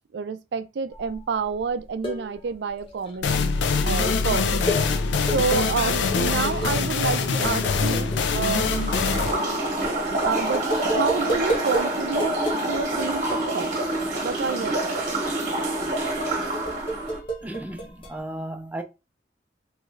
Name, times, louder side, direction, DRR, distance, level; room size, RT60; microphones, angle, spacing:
voice 1, 0.1-3.4 3.8-4.7 5.3-8.9 10.2-12.4 12.7-13.7 14.2-15.0, right 5 dB, 70° right, 0.4 m, -28 dB
sound 1, 0.9-1.2 1.6-2.5 2.8-3.2 3.9-11.9 12.2-14.4 14.6-18.2, equal, 30° left, 0.7 m, -33 dB
sound 2, 3.2-10.7, left 4 dB, 85° left, 0.4 m, -24 dB
sound 3, 8.5-17.2, right 2 dB, 45° right, 1.0 m, -27 dB
voice 2, 17.4-18.8, right 1 dB, 10° right, 0.4 m, -34 dB
3.0 x 2.4 x 3.1 m
head